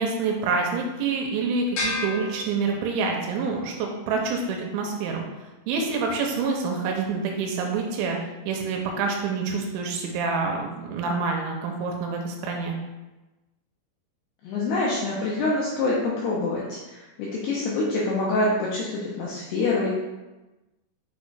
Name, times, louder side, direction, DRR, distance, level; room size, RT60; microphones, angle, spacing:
voice 1, 0.0-5.2 5.7-8.2 8.5-12.8, right 4 dB, 85° right, 1 dB, 2.9 m, -27 dB
sound 1, 1.8-3.2, left 2 dB, 60° left, 2.6 m, -32 dB
voice 2, 14.4-19.9, left 2 dB, 90° left, -5 dB, 2.3 m, -26 dB
6.8 x 6.3 x 2.4 m, 1.1 s
omnidirectional pair, 5.7 m